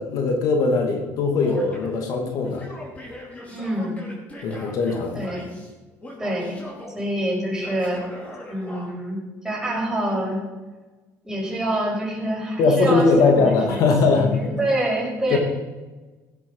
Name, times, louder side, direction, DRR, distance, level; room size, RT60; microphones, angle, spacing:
voice 1, 0.0-2.7 4.4-5.3 12.6-14.4 15.3-15.4, left 4 dB, 65° left, 4 dB, 2.5 m, -20 dB
Male speech man speaking / Yell, 1.4-2.0 2.4-5.7 6.0-7.0 7.6-8.9, left 1 dB, 20° left, 4.5 m, -40 dB
voice 2, 3.5-4.1 5.1-5.5 6.2-6.6 6.9-8.0 8.5-9.2 9.4-10.4 11.2-13.0 13.3-13.8 14.1-15.4, right 1 dB, 10° right, -3 dB, 6.0 m, -26 dB
16.5 x 11.0 x 5.5 m, 1.2 s
cardioid pair, 130°, 6 cm